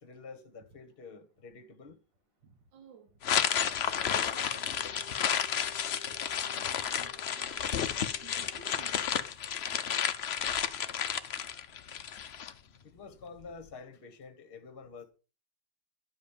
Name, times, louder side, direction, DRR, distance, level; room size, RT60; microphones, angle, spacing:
voice 1, 0.0-2.0 12.8-15.0, left 4 dB, 35° left, 1.4 m, -48 dB
voice 2, 2.4-3.1 3.9-4.9 5.6-5.8 6.1-7.7 8.2-9.4 9.9-10.7, right 6 dB, 70° right, 2.2 m, -56 dB
sound 1, 3.2-12.5, left 8 dB, 90° left, 0.5 m, -32 dB
sound 2, 4.2-9.2, left 8 dB, 45° right, 1.2 m, -56 dB
11.0 x 5.1 x 7.3 m
omnidirectional pair, 2.1 m